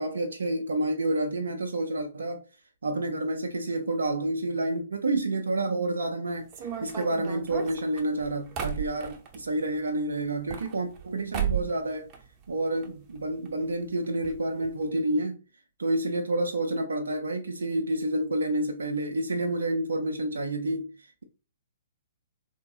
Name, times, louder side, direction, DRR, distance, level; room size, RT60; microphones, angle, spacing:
voice 1, 0.0-2.4 2.8-6.5 6.8-12.1 12.5-15.4 15.8-21.2, right 2 dB, 75° right, 0.4 m, -29 dB
sound 1, 6.5-9.4 10.3-11.1 11.3-11.8 12.1-12.9 13.2-13.3 13.5-13.6 14.2-14.4 14.6-14.8, right 8 dB, 30° right, 0.6 m, -34 dB
3.6 x 2.7 x 2.6 m
figure-of-eight pair, 120°, 0 cm